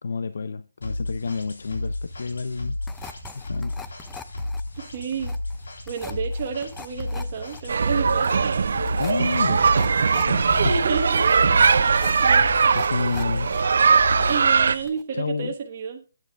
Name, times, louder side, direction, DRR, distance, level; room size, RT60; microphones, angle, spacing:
voice 1, 0.0-2.8 3.3-3.7 9.0-9.7 10.2-10.7 12.7-13.5 15.1-15.5, left 4 dB, 65° left, 0.6 m, -29 dB
sound 1, 0.8-14.9, left 2 dB, 85° left, 3.4 m, -33 dB
sound 2, 2.9-13.6 13.9-14.6 14.9-15.0, left 6 dB, 5° left, 0.5 m, -43 dB
voice 2, 4.8-5.4 5.9-8.6 10.6-11.3 11.8-12.5 13.5-13.7 14.3-16.0, right 5 dB, 30° right, 1.2 m, -30 dB
sound 3, 7.7-14.8, right 5 dB, 60° right, 0.6 m, -20 dB
11.0 x 9.2 x 3.4 m
hypercardioid pair, 170°, 0 cm